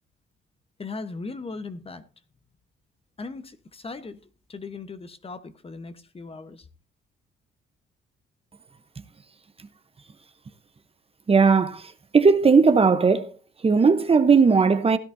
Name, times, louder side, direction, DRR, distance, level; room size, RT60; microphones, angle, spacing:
voice 1, 0.8-2.0 3.2-4.2 4.5-6.6, left 3 dB, 30° left, 1.1 m, -38 dB
voice 2, 11.3-13.3 13.6-15.0, right 5 dB, 30° right, 0.9 m, -18 dB
16.0 x 11.0 x 2.7 m
cardioid pair, 90°, 20 cm